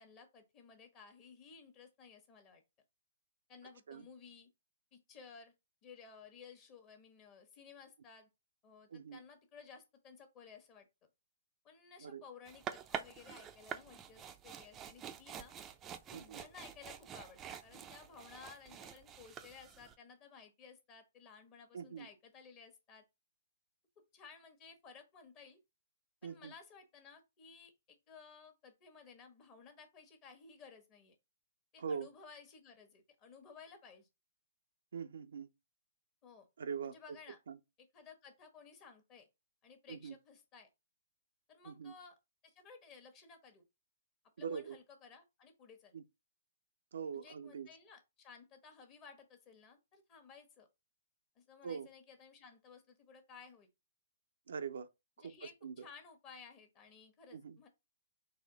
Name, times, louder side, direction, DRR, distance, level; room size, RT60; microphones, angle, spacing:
voice 1, 0.0-2.6 3.5-4.5 4.9-5.5 5.8-8.3 8.6-10.9 11.6-15.5 16.1-23.0 24.0-25.6 26.2-31.1 31.7-34.1 36.2-36.5 36.8-37.4 37.9-39.3 39.6-40.7 41.5-42.1 42.4-43.6 44.4-45.9 47.1-50.7 51.3-53.7 55.2-57.7, left 5 dB, 30° left, 1.2 m, -57 dB
sound 1, 12.5-19.9, right 8 dB, 20° right, 0.5 m, -47 dB
voice 2, 16.1-16.4 21.7-22.1 26.2-26.5 31.8-32.1 34.9-35.5 36.6-37.2 37.5-37.6 39.9-40.2 41.6-41.9 44.4-44.8 45.9-46.0 46.9-47.7 51.6-51.9 54.5-54.9 55.2-55.3 55.6-55.9 57.3-57.6, right 6 dB, 70° right, 0.5 m, -43 dB
4.2 x 2.7 x 3.8 m
hypercardioid pair, 135°, 0 cm